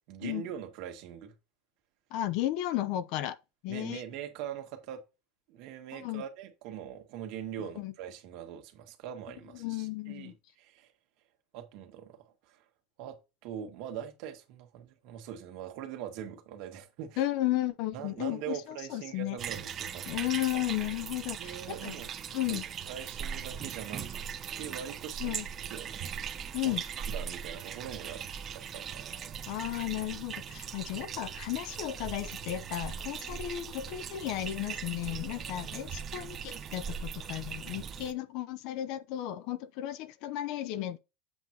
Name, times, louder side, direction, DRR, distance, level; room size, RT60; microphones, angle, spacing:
voice 1, 0.1-1.3 3.7-5.0 5.5-10.9 11.5-12.6 13.0-13.2 13.4-17.2 17.9-20.2 21.4-22.1 22.5-24.3 24.5-25.4 25.7-26.0 26.6-26.8 27.1-28.2 28.5-29.4, right 9 dB, 55° right, 1.7 m, -42 dB
voice 2, 2.1-3.4 3.6-4.0 5.9-6.2 7.8-7.9 9.5-10.3 17.2-19.4 20.1-22.0 22.3-22.6 25.2-25.5 26.5-26.8 29.5-41.0, left 14 dB, 55° left, 0.6 m, -34 dB
sound 1, 19.4-38.1, right 7 dB, 30° right, 0.7 m, -40 dB
8.0 x 7.1 x 2.8 m
supercardioid pair, 150°, 0 cm